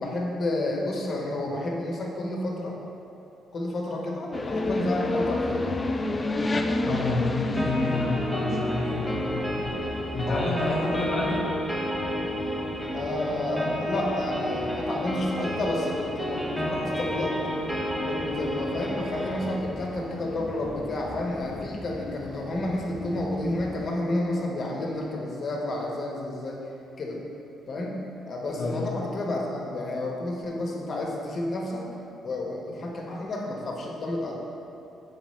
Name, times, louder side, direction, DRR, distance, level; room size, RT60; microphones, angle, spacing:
voice 1, 0.0-2.8 3.5-5.7 10.2-11.0 12.9-17.3 18.1-26.6 27.0-27.2 27.7-28.0 28.3-31.8 32.2-34.4, left 1 dB, 50° left, -1 dB, 1.1 m, -30 dB
sound 1, 4.3-23.9, left 2 dB, 30° left, 0.3 m, -33 dB
voice 2, 6.8-9.4 10.1-11.4 28.6-28.9, left 3 dB, 70° left, -6 dB, 0.7 m, -29 dB
sound 2, 7.6-19.6, equal, ahead, 0.7 m, -31 dB
7.1 x 4.8 x 3.2 m, 2.8 s
cardioid pair, 90°, 0 cm